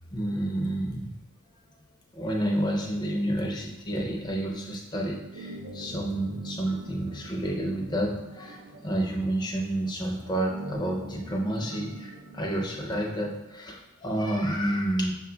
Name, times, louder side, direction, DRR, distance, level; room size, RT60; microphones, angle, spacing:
voice 1, 0.1-1.1 2.1-15.1, right 1 dB, 20° left, 0 dB, 0.5 m, -30 dB
sound 1, 5.3-12.8, right 1 dB, 90° right, 0.6 m, -42 dB
6.1 x 2.3 x 3.8 m, 1.0 s
head